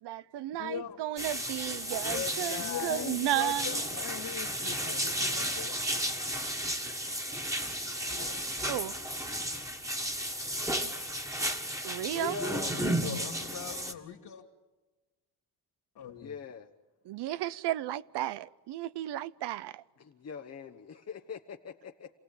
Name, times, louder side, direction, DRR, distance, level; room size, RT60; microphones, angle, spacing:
voice 1, 0.0-3.8 8.7-8.9 11.8-12.4 17.1-19.8, right 14 dB, 75° right, 0.7 m, -33 dB
voice 2, 0.6-1.0 2.6-5.8 8.1-8.4 12.5-14.4 15.9-16.4, left 8 dB, 70° left, 2.3 m, -42 dB
sound 1, 1.2-13.9, right 1 dB, 5° right, 1.9 m, -33 dB
voice 3, 1.7-3.2 3.9-4.0 12.0-13.3 16.2-16.7 20.0-22.1, left 7 dB, 40° left, 1.2 m, -41 dB
28.0 x 18.0 x 8.6 m
cardioid pair, 120°, 41 cm